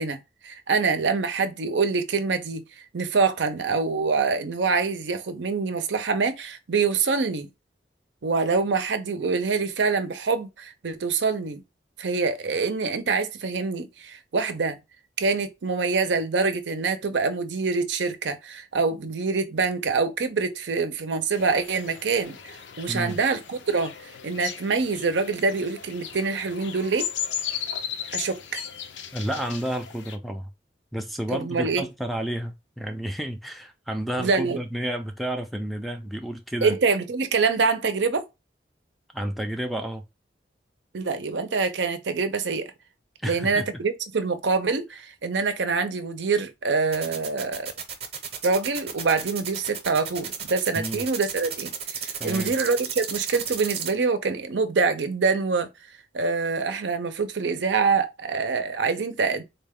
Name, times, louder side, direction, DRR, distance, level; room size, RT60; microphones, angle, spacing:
voice 1, 0.0-2.6 2.9-7.5 8.2-11.6 12.0-14.8 15.2-23.9 24.2-27.1 28.1-28.6 31.3-31.9 34.2-34.6 36.6-38.2 40.9-42.7 43.2-47.7 48.4-55.7 56.1-59.4, right 4 dB, 80° right, 0.6 m, -25 dB
sound 1, 21.3-30.2, left 8 dB, 85° left, 0.5 m, -36 dB
voice 2, 22.9-23.2 29.1-30.5 30.9-36.7 39.1-40.0 43.2-43.7 50.8-51.0 52.2-52.5, right 1 dB, ahead, 0.4 m, -31 dB
sound 2, 46.9-53.9, right 7 dB, 35° right, 0.7 m, -33 dB
3.9 x 2.2 x 3.5 m
head